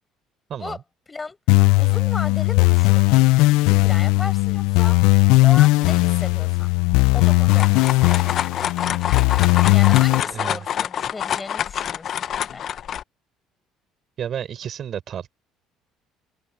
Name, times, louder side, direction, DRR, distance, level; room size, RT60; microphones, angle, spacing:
voice 1, 0.5-0.8 10.2-10.6 14.2-15.3, right 9 dB, 50° right, 5.3 m, -31 dB
sound 1, 1.5-10.2, left 22 dB, 85° left, 0.5 m, -17 dB
voice 2, 1.7-3.0 3.7-6.7 7.1-7.9 9.7-12.6, left 4 dB, 20° left, 6.2 m, -36 dB
sound 2, 7.2-13.0, left 9 dB, 50° left, 0.9 m, -27 dB
open air
cardioid pair, 105°, 0 cm